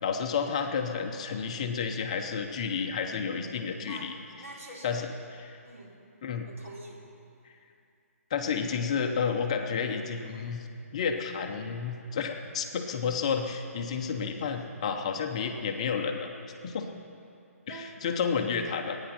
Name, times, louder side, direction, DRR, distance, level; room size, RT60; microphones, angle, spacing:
voice 1, 0.0-4.1 4.8-5.6 6.2-6.5 7.4-7.5 8.3-10.6 10.9-16.3 16.6-16.9 17.7-19.0, left 6 dB, 25° left, 3 dB, 0.7 m, -31 dB
voice 2, 4.4-5.0 5.6-5.9 6.5-7.0 17.7-18.0, right 2 dB, 65° right, -2 dB, 3.6 m, -45 dB
23.0 x 9.7 x 5.9 m, 2.6 s
hypercardioid pair, 175°, 8 cm